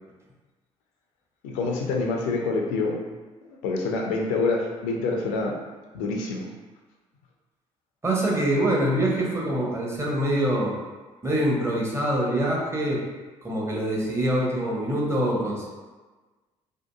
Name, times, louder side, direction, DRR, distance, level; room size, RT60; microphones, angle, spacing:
voice 1, 1.4-3.0 3.4-5.5 5.9-6.5, left 3 dB, 70° left, 0 dB, 0.4 m, -26 dB
voice 2, 8.0-10.8 11.2-13.0 13.4-15.7, right 1 dB, 15° right, -3 dB, 0.7 m, -24 dB
2.7 x 2.4 x 2.2 m, 1.3 s
figure-of-eight pair, 45°, 16 cm